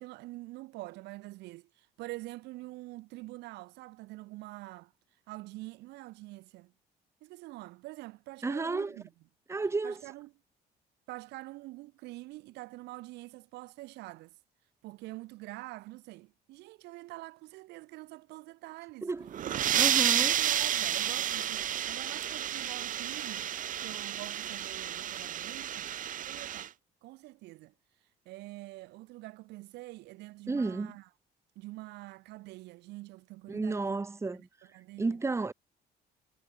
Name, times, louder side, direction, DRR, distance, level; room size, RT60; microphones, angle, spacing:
voice 1, 0.0-4.9 5.3-6.7 7.2-9.1 9.8-10.3 11.1-14.3 14.8-19.1 19.4-23.5 23.8-25.9 26.2-26.7 27.0-27.7 28.2-31.1 31.5-34.0 34.3-35.2, right 20 dB, 85° right, 1.4 m, -46 dB
voice 2, 8.4-8.9 9.5-10.0 19.0-19.3 19.7-20.4 30.5-30.9 33.5-34.5 35.0-35.5, right 3 dB, 15° right, 1.2 m, -32 dB
sound 1, 19.2-26.7, right 10 dB, 50° right, 1.0 m, -31 dB
cardioid pair, 110°, 17 cm